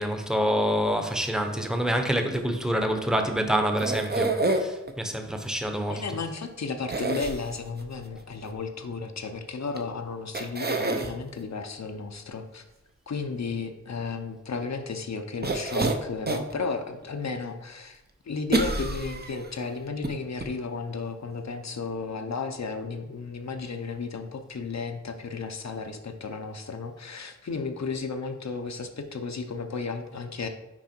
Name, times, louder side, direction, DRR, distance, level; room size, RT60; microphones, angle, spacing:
voice 1, 0.0-6.0, equal, ahead, 5 dB, 0.8 m, -27 dB
sound 1, 3.8-4.9 6.9-7.8 9.8-9.9 10.3-11.1 15.4-16.5 17.0-17.1 18.5-19.5 20.0-20.1 20.4-20.5, right 2 dB, 35° right, 0.7 m, -27 dB
voice 2, 5.9-12.6 13.1-18.0 18.3-30.5, left 4 dB, 65° left, 6 dB, 0.6 m, -34 dB
6.0 x 4.9 x 4.4 m, 0.96 s
wide cardioid pair, 60°, 29 cm